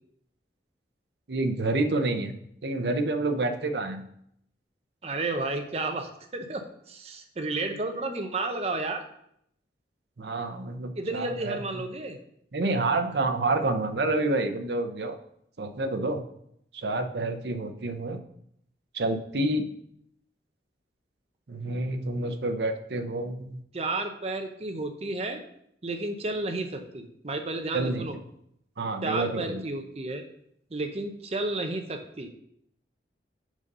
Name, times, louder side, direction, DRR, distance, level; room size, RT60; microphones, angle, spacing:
voice 1, 1.3-2.3 2.6-4.0 10.2-11.6 12.5-15.2 15.6-16.2 16.7-18.2 18.9-19.6 21.5-23.6 27.7-28.0 28.8-29.6, right 2 dB, 70° right, 7 dB, 0.7 m, -28 dB
voice 2, 5.0-9.0 11.0-12.2 23.7-25.4 25.8-28.2 29.0-30.2 30.7-32.3, right 2 dB, 35° right, 6 dB, 0.6 m, -32 dB
6.2 x 5.4 x 5.4 m, 0.73 s
head